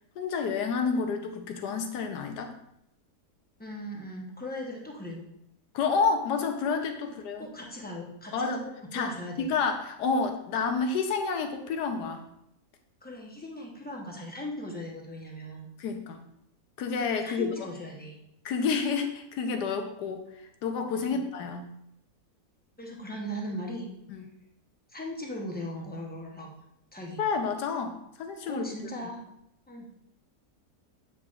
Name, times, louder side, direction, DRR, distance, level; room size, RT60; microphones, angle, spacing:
voice 1, 0.2-2.5 5.7-7.5 8.3-8.6 8.9-9.1 9.4-12.2 15.8-16.2 16.8-17.5 18.4-20.2 20.6-21.7 24.1-24.2 27.2-28.7, left 5 dB, 80° left, 5 dB, 1.3 m, -29 dB
voice 2, 3.6-5.3 7.1-8.6 8.9-9.5 13.0-15.7 17.2-18.2 21.1-21.3 22.8-23.9 24.9-26.5 26.9-27.2 28.5-29.2 29.7-29.9, equal, 10° left, -1 dB, 0.5 m, -38 dB
8.0 x 4.8 x 2.4 m, 0.77 s
omnidirectional pair, 1.7 m